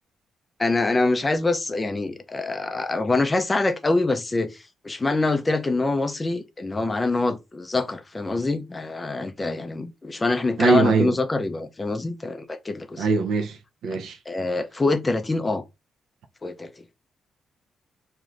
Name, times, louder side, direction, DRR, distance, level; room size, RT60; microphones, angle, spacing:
voice 1, 0.6-13.1 13.9-14.0 14.3-15.6 16.4-16.7, left 3 dB, 15° left, 0.3 m, -25 dB
voice 2, 10.6-11.1 13.0-13.6 13.8-14.2, right 4 dB, 90° right, 0.5 m, -21 dB
2.5 x 2.4 x 3.1 m
cardioid pair, 160°, 0 cm